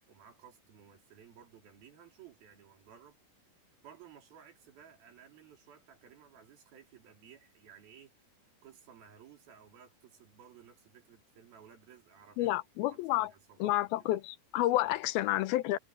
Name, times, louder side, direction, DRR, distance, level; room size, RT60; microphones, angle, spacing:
voice 1, 0.1-3.2 3.8-8.1 8.6-12.6 12.9-14.2 14.9-15.0, right 8 dB, 80° right, 5.2 m, -57 dB
voice 2, 12.4-13.3 13.6-15.8, left 15 dB, 85° left, 2.7 m, -30 dB
omnidirectional pair, 4.2 m